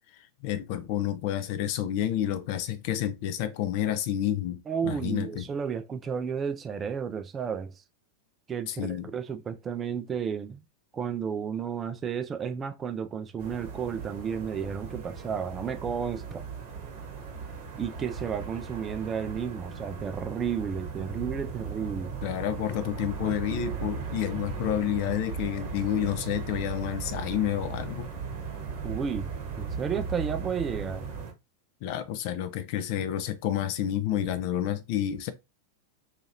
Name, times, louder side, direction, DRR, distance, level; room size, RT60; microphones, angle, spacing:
voice 1, 0.4-5.5 8.7-9.1 22.2-28.1 31.8-35.3, left 11 dB, 45° left, 0.4 m, -29 dB
voice 2, 4.7-7.7 8.5-10.6 10.9-16.5 17.8-22.1 28.8-31.0, right 7 dB, 20° right, 0.3 m, -32 dB
sound 1, 13.4-31.3, right 5 dB, 50° right, 1.0 m, -37 dB
2.8 x 2.4 x 2.8 m
figure-of-eight pair, 90°, 0 cm